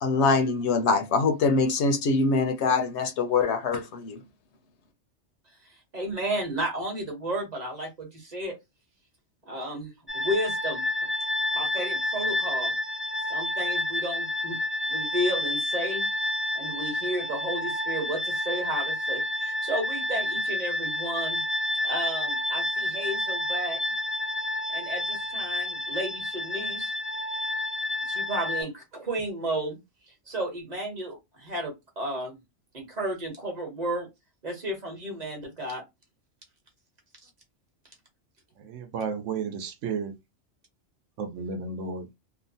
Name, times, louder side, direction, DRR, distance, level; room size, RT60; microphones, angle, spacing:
voice 1, 0.0-4.2, left 4 dB, 70° left, 0.8 m, -24 dB
voice 2, 5.9-8.6 9.5-10.8 11.5-12.7 13.3-14.6 14.9-16.1 16.5-21.4 21.8-23.8 24.7-26.9 28.1-29.8 30.3-32.4 32.7-34.1 34.4-35.8 37.2-37.3, right 1 dB, 35° right, 1.0 m, -33 dB
sound 1, 10.1-28.6, left 1 dB, 10° right, 0.7 m, -29 dB
voice 3, 38.6-40.2 41.2-42.1, right 5 dB, 80° right, 1.0 m, -33 dB
2.9 x 2.1 x 2.6 m
omnidirectional pair, 1.3 m